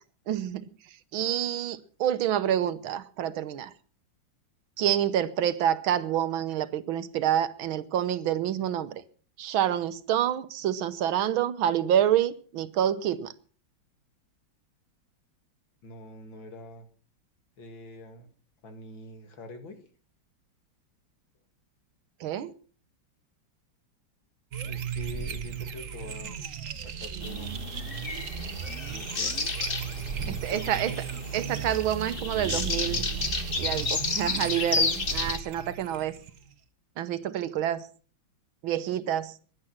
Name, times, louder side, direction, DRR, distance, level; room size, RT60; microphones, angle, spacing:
voice 1, 0.3-3.7 4.8-9.0 9.4-13.3 22.2-22.5 30.3-30.9 31.3-33.1 33.6-36.2 37.0-37.9 38.6-39.4, right 10 dB, 90° right, 14 dB, 1.8 m, -28 dB
voice 2, 15.8-16.9 17.6-18.3 18.6-19.8 24.5-26.4 26.8-27.6 28.9-29.4 30.2-31.1, left 1 dB, 75° left, 7 dB, 3.0 m, -44 dB
sound 1, 24.5-36.5, right 7 dB, 45° right, 1.3 m, -36 dB
sound 2, 27.2-35.4, left 4 dB, 30° left, 1.2 m, -32 dB
16.5 x 11.0 x 6.0 m, 0.42 s
omnidirectional pair, 2.2 m